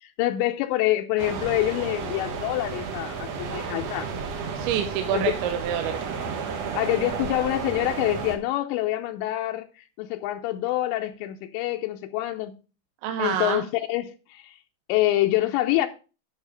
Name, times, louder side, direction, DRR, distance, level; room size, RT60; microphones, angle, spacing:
voice 1, 0.0-4.1 5.1-5.3 6.7-12.6 13.2-14.6 14.9-15.9, left 15 dB, 85° left, 2.8 m, -26 dB
sound 1, 1.2-8.4, right 6 dB, 75° right, 1.5 m, -32 dB
voice 2, 4.6-6.0 13.0-13.6, right 9 dB, 90° right, 3.1 m, -27 dB
11.0 x 5.7 x 4.9 m
omnidirectional pair, 5.1 m